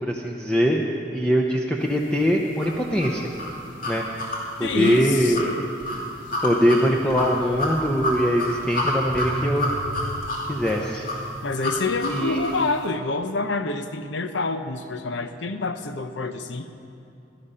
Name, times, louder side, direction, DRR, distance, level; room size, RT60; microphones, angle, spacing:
voice 1, 0.0-0.8 1.1-3.2 3.9-4.0 4.6-5.5 6.4-9.7 10.5-11.1 12.1-12.5, equal, 5° left, -1 dB, 0.8 m, -22 dB
sound 1, 2.6-12.7, left 1 dB, 50° left, 2.8 m, -29 dB
voice 2, 4.6-5.7 11.4-16.7, left 3 dB, 80° left, 9 dB, 0.8 m, -27 dB
17.0 x 12.0 x 5.7 m, 2.6 s
head